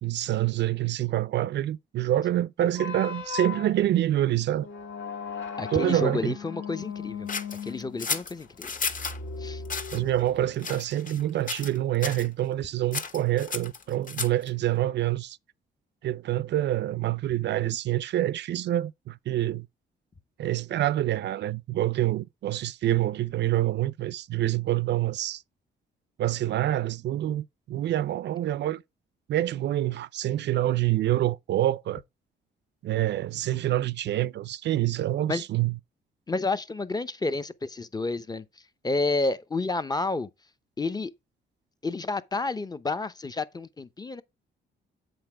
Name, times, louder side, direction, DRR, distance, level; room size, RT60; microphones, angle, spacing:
voice 1, 0.0-4.7 5.7-6.4 9.9-15.4 16.0-19.7 20.4-25.4 26.2-28.8 29.3-32.0 32.8-35.7, right 13 dB, 60° right, 0.4 m, -26 dB
sound 1, 2.7-10.5, left 6 dB, 75° left, 2.0 m, -38 dB
voice 2, 5.6-7.3 7.6-8.7 9.4-9.6 35.3-35.4 36.3-38.4 38.8-40.3 40.8-41.1 41.8-44.2, left 3 dB, 20° left, 0.7 m, -30 dB
sound 2, 7.3-9.2 9.6-10.0 10.6-11.2 11.5-11.8 12.0-12.3 12.9-14.5, left 5 dB, 40° left, 1.5 m, -33 dB
7.9 x 4.3 x 4.8 m
cardioid pair, 90°, 20 cm